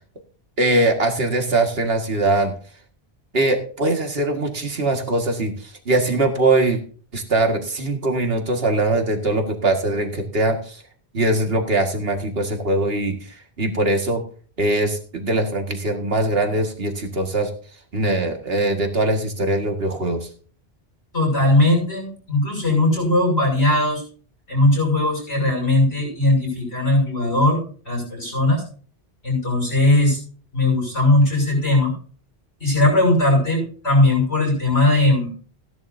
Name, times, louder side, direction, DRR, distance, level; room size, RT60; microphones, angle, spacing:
voice 1, 0.6-2.5 3.3-6.8 7.1-10.8 11.1-14.2 14.6-17.5 17.9-20.3, right 2 dB, 65° right, 4 dB, 2.1 m, -21 dB
voice 2, 21.1-24.0 24.5-28.6 29.2-30.2 30.5-31.9 32.6-35.3, left 2 dB, 80° left, 0 dB, 6.7 m, -19 dB
17.0 x 10.5 x 2.7 m, 0.42 s
omnidirectional pair, 1.1 m